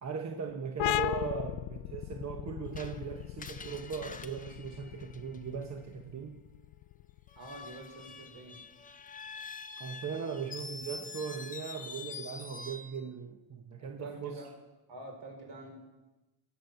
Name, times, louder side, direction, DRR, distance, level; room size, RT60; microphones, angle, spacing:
voice 1, 0.0-6.4 9.8-14.4, right 6 dB, 35° right, 4 dB, 0.9 m, -39 dB
sound 1, 0.8-8.1, left 15 dB, 70° left, 0.5 m, -37 dB
Screech, 2.8-5.6 7.3-13.0, left 4 dB, 15° left, 0.6 m, -46 dB
voice 2, 7.4-8.6 13.8-14.5 14.9-15.8, right 2 dB, 60° right, 1 dB, 4.5 m, -46 dB
18.5 x 8.0 x 6.7 m, 1.1 s
cardioid pair, 165°, 50 cm